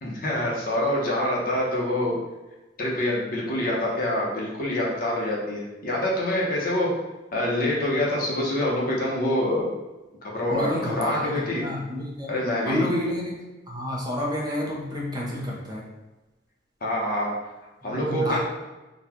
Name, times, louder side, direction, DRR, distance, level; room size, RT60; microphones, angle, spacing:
voice 1, 0.0-2.2 2.8-6.9 7.3-9.7 10.2-11.6 12.3-12.8 16.8-17.3 17.8-18.4, left 1 dB, 50° left, -3 dB, 1.0 m, -26 dB
voice 2, 10.5-12.3 12.6-13.4 13.7-15.9 17.8-18.4, left 1 dB, 20° right, -3 dB, 0.8 m, -29 dB
4.0 x 2.4 x 4.3 m, 1.1 s
head